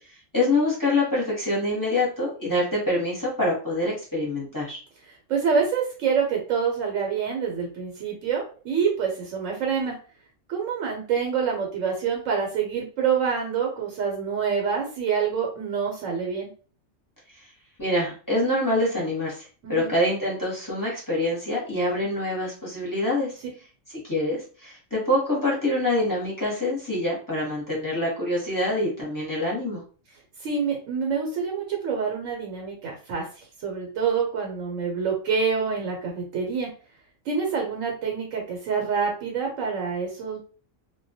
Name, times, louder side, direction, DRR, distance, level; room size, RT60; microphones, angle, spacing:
voice 1, 0.3-4.8 17.8-23.3 24.0-24.4 24.6-29.8, left 1 dB, 20° left, -5 dB, 0.7 m, -25 dB
voice 2, 5.3-9.9 10.5-16.5 19.6-19.9 30.4-33.3 33.6-36.7 37.3-40.4, right 6 dB, 80° right, 0 dB, 1.0 m, -26 dB
2.2 x 2.1 x 2.6 m, 0.38 s
omnidirectional pair, 1.3 m